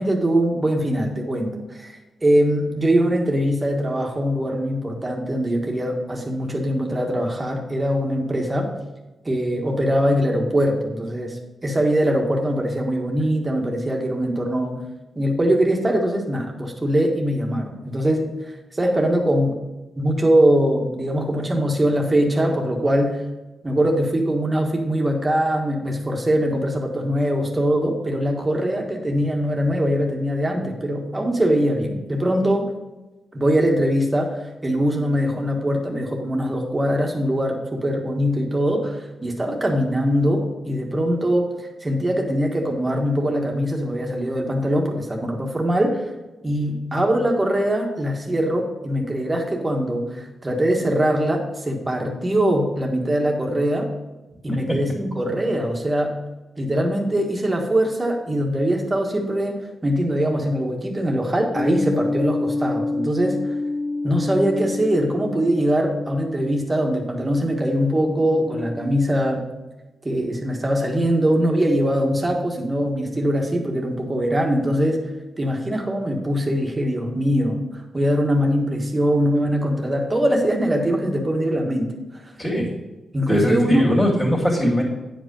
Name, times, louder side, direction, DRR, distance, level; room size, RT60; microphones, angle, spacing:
voice 1, 0.0-8.7 9.2-14.8 15.1-19.5 20.0-23.2 23.6-32.7 33.3-46.0 46.4-53.9 54.4-56.1 56.6-63.5 64.0-69.5 70.0-75.1 75.4-81.9 83.1-83.9, equal, 20° right, 1 dB, 1.6 m, -22 dB
sound 1, 61.5-69.4, left 2 dB, 65° left, 1.1 m, -29 dB
voice 2, 83.3-84.8, equal, 10° left, -7 dB, 2.5 m, -20 dB
9.8 x 5.1 x 5.3 m, 1.1 s
wide cardioid pair, 110°, 0 cm